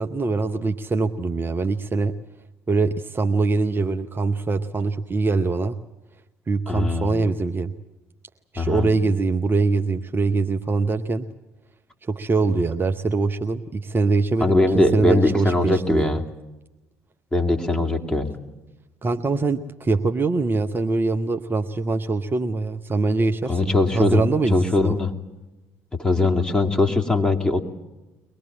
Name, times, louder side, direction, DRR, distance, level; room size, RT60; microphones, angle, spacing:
voice 1, 0.0-2.1 2.7-5.8 6.5-7.7 8.5-11.3 12.1-16.2 19.0-25.0, right 3 dB, 25° right, 6 dB, 1.0 m, -23 dB
voice 2, 6.7-7.1 8.6-8.9 14.4-16.2 17.3-18.3 23.5-25.1 26.0-27.6, left 2 dB, 10° left, 3 dB, 3.0 m, -21 dB
23.5 x 20.5 x 8.8 m, 1.1 s
figure-of-eight pair, 50°, 8 cm